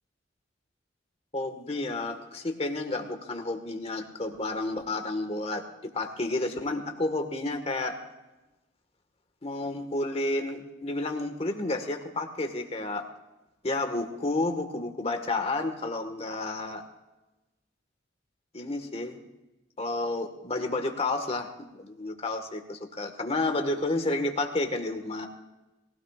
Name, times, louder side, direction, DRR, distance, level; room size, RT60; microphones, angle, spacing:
voice 1, 1.3-8.0 9.4-13.0 13.6-16.8 18.5-19.2 19.8-25.3, left 2 dB, 35° left, 5 dB, 1.6 m, -31 dB
22.0 x 16.5 x 2.5 m, 1.0 s
head